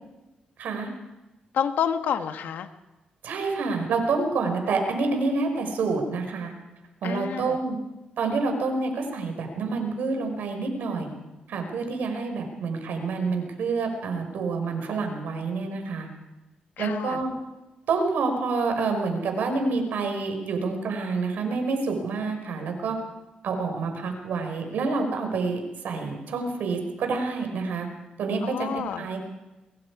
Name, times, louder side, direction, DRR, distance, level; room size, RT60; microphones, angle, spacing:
voice 1, 0.6-0.9 3.2-6.5 7.0-7.8 8.2-11.2 11.5-16.1 16.8-17.3 17.9-23.0 23.4-27.9 28.2-29.3, right 4 dB, 80° right, 4 dB, 5.4 m, -28 dB
voice 2, 1.5-2.7 7.0-7.6 16.8-17.2 28.4-29.0, left 8 dB, 85° left, 7 dB, 1.7 m, -28 dB
23.5 x 22.5 x 5.0 m, 1.1 s
cardioid pair, 75°, 3 cm